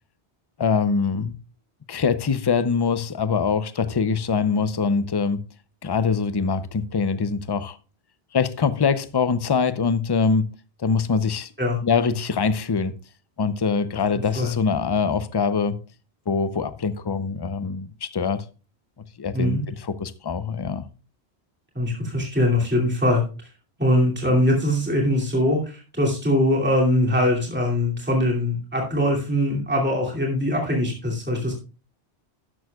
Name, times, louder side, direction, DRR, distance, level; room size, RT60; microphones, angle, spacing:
voice 1, 0.6-1.4 1.9-5.4 5.8-7.8 8.3-10.5 10.8-11.5 11.8-12.9 13.4-15.8 16.3-18.4 19.2-20.9, left 5 dB, 30° left, 0.5 m, -23 dB
voice 2, 14.1-14.6 19.3-19.6 21.7-23.2 23.8-31.5, left 1 dB, 10° right, 2.6 m, -22 dB
12.5 x 11.0 x 2.3 m
omnidirectional pair, 1.1 m